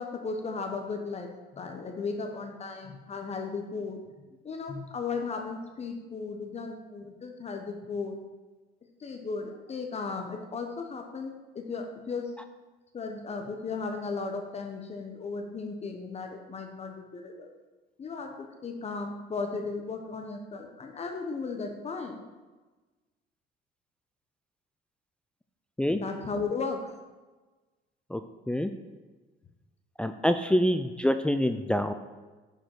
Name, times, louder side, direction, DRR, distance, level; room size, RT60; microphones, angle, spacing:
voice 1, 0.0-4.0 4.4-8.2 9.0-12.3 12.9-17.5 18.0-22.3 25.9-26.9, left 4 dB, 35° left, 4 dB, 1.0 m, -36 dB
voice 2, 30.0-31.9, equal, 5° left, 8 dB, 0.5 m, -26 dB
10.0 x 5.1 x 6.0 m, 1.2 s
cardioid pair, 105°, 19 cm